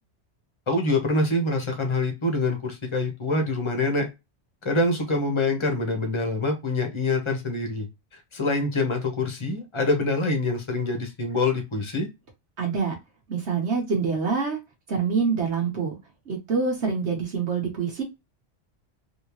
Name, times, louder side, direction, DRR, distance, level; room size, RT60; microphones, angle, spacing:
voice 1, 0.7-4.1 4.6-7.9 8.1-12.1, left 2 dB, 25° left, 4 dB, 1.0 m, -25 dB
voice 2, 12.6-12.9 13.3-14.6 14.9-16.0 16.3-18.0, right 5 dB, 65° right, 0 dB, 1.2 m, -26 dB
3.5 x 2.8 x 2.9 m, 0.23 s
omnidirectional pair, 1.2 m